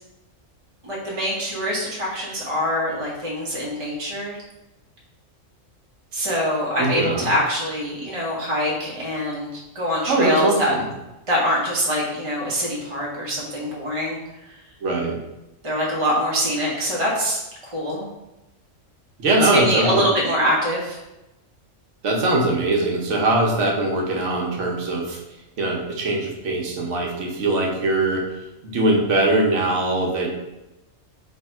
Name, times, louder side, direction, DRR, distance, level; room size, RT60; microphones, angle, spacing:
voice 1, 0.8-4.4 6.1-10.7 11.3-14.2 15.6-18.1 19.4-21.0, equal, 30° right, -5 dB, 0.9 m, -24 dB
voice 2, 6.8-7.3 10.1-10.8 14.8-15.1 19.2-20.0 22.0-25.2 25.6-28.2 28.6-30.3, right 2 dB, 70° right, -1 dB, 1.1 m, -21 dB
3.3 x 2.7 x 4.4 m, 0.95 s
omnidirectional pair, 1.3 m